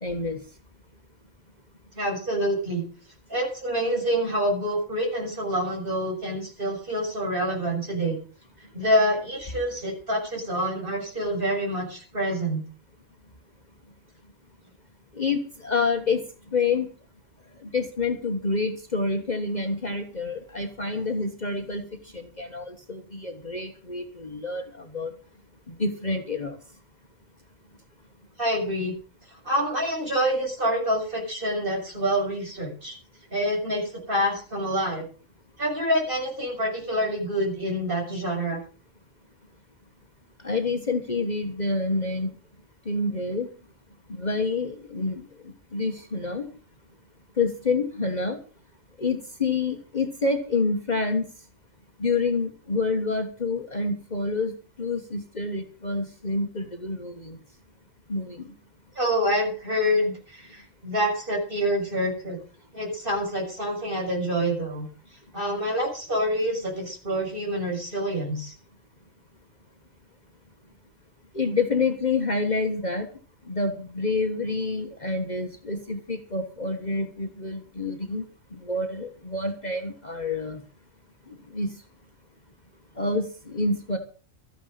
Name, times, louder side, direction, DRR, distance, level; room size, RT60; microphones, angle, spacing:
voice 1, 0.0-0.4 15.1-16.2 16.5-16.9 17.6-21.8 22.1-25.1 25.7-26.6 40.4-42.3 42.8-43.5 44.1-46.5 47.4-48.4 49.0-51.2 52.0-54.5 54.8-57.4 58.1-58.5 71.3-73.1 73.5-78.2 78.5-80.6 81.3-81.7 83.0-84.0, left 3 dB, 35° left, 4 dB, 1.6 m, -28 dB
voice 2, 2.0-2.8 3.3-8.2 8.7-12.6 28.4-28.9 29.4-32.9 33.3-35.1 35.6-38.6 58.9-62.4 62.7-64.9 65.3-68.5, equal, 40° right, 0 dB, 6.7 m, -27 dB
14.0 x 10.0 x 6.6 m, 0.37 s
omnidirectional pair, 1.3 m